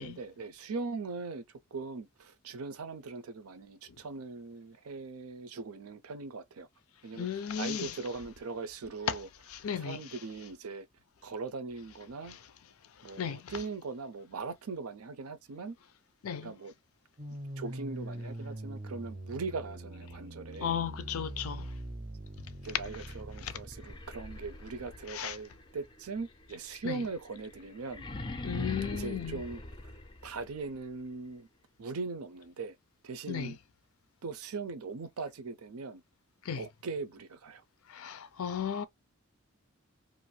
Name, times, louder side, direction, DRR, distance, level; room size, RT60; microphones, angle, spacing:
voice 1, 0.0-1.4 1.7-6.7 7.0-7.3 7.6-9.3 9.8-10.9 11.2-12.4 13.0-15.8 16.4-16.7 17.6-20.8 22.6-28.0 28.9-29.6 30.2-31.5 31.8-32.8 33.0-33.6 34.2-36.0 36.5-37.6, right 4 dB, 85° right, 0.5 m, -40 dB
voice 2, 7.1-8.0 9.1-9.2 9.5-10.1 12.3-12.4 13.0-13.6 16.2-16.5 20.6-21.8 23.4-23.6 25.1-25.4 26.8-27.1 28.4-29.4 33.3-33.5 36.4-36.6 37.9-38.8, left 8 dB, 80° left, 0.5 m, -35 dB
sound 1, 17.2-23.9, right 1 dB, 35° right, 0.5 m, -42 dB
sound 2, 23.7-30.6, left 2 dB, 20° left, 0.4 m, -43 dB
2.6 x 2.4 x 3.1 m
head